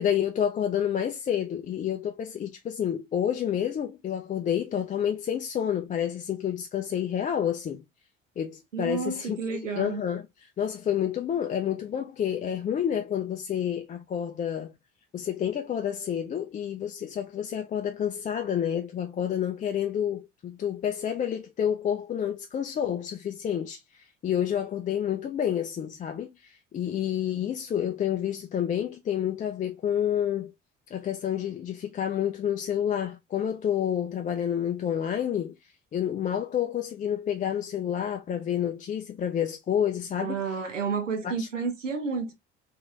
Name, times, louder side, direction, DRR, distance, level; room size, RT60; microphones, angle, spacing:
voice 1, 0.0-7.8 8.4-9.4 9.7-14.7 15.1-23.8 24.2-30.5 30.9-35.5 35.9-40.4 41.2-41.5, left 9 dB, 25° left, 0.4 m, -29 dB
voice 2, 8.7-10.0 40.2-42.3, right 5 dB, 85° right, 0.6 m, -31 dB
3.1 x 3.0 x 2.4 m
figure-of-eight pair, 50°, 36 cm